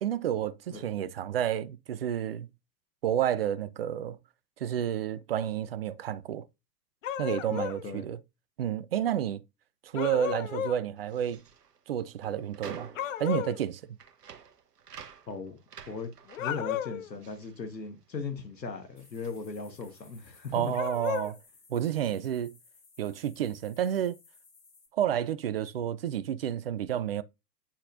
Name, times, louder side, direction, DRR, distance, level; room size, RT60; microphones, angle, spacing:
voice 1, 0.0-2.5 3.0-4.2 4.6-6.4 7.2-8.2 8.6-9.4 9.8-11.4 11.9-12.9 13.2-13.8 20.5-21.4 21.7-22.6 23.0-24.2 24.9-27.2, right 10 dB, 40° right, 0.4 m, -30 dB
sound 1, 7.0-7.8 9.9-10.8 13.0-13.6 16.3-17.1 20.7-21.3, left 10 dB, 50° left, 0.8 m, -33 dB
voice 2, 7.5-8.0 15.3-15.6 15.9-16.1 16.4-20.7, left 4 dB, 80° left, 1.4 m, -38 dB
sound 2, 11.0-18.5 18.7-20.2, right 7 dB, 65° right, 1.1 m, -49 dB
sound 3, 19.0-24.9, left 4 dB, 20° left, 3.1 m, -59 dB
8.4 x 5.7 x 2.6 m
figure-of-eight pair, 105°, 50 cm